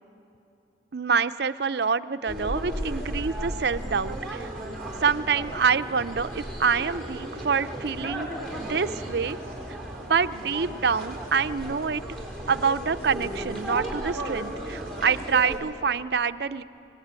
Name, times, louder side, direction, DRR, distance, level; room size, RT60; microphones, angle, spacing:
voice 1, 0.9-4.5 5.0-9.4 10.0-12.0 12.5-16.6, right 6 dB, 60° right, 12 dB, 0.5 m, -26 dB
sound 1, 2.3-15.6, right 1 dB, 5° left, 3.8 m, -35 dB
27.5 x 17.5 x 8.9 m, 2.7 s
head